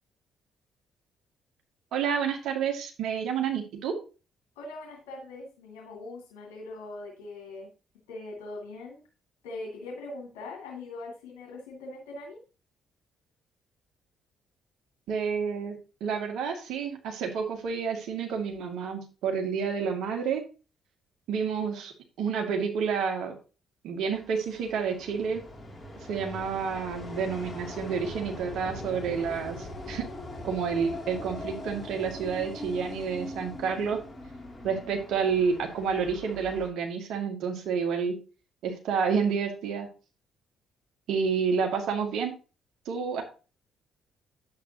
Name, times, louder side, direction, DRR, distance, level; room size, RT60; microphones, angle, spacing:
voice 1, 1.9-4.0 15.1-20.4 21.3-21.9 22.2-23.3 23.8-25.4 26.1-30.0 30.4-34.0 34.6-38.2 38.6-39.9 41.1-42.3 42.9-43.2, right 6 dB, 60° right, 2 dB, 2.4 m, -29 dB
voice 2, 4.6-7.7 8.1-9.0 9.4-12.4, left 2 dB, 70° left, -2 dB, 2.6 m, -41 dB
sound 1, 24.1-36.7, left 1 dB, 20° left, 2.9 m, -41 dB
10.0 x 8.2 x 2.9 m, 0.32 s
figure-of-eight pair, 45°, 0 cm